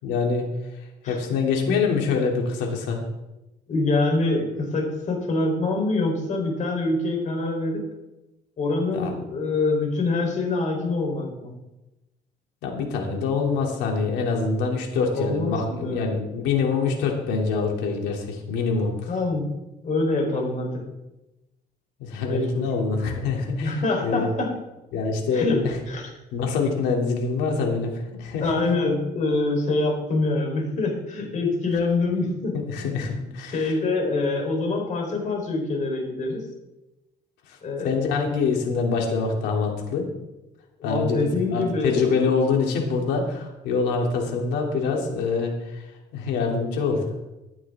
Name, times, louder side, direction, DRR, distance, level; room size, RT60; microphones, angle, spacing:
voice 1, 0.0-0.5 1.1-3.0 8.9-9.1 12.6-19.1 22.0-24.3 24.9-25.7 26.3-28.6 32.5-33.8 37.5-40.1 40.8-45.9 46.1-47.0, left 4 dB, 90° left, 1 dB, 3.1 m, -25 dB
voice 2, 3.7-7.8 8.6-11.5 15.1-16.1 19.1-19.5 19.8-20.8 22.3-22.6 23.6-24.5 25.3-26.1 28.4-32.6 33.2-33.3 33.5-36.4 37.6-38.0 40.8-42.2, left 3 dB, 45° left, 2 dB, 4.2 m, -25 dB
15.0 x 11.0 x 3.7 m, 0.98 s
cardioid pair, 110°, 17 cm